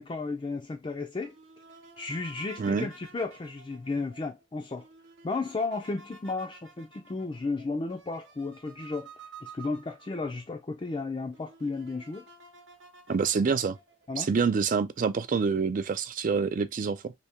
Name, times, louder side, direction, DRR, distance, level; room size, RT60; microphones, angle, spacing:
voice 1, 0.0-1.3 2.0-4.9 5.2-9.1 9.4-12.3 14.1-14.3, left 3 dB, 25° left, 0.4 m, -33 dB
sound 1, 1.2-10.5 11.0-11.1 11.3-14.1, right 3 dB, 70° right, 0.9 m, -52 dB
voice 2, 2.6-2.9 13.1-13.8 14.2-17.1, right 5 dB, 45° right, 0.3 m, -27 dB
3.4 x 2.7 x 2.8 m
head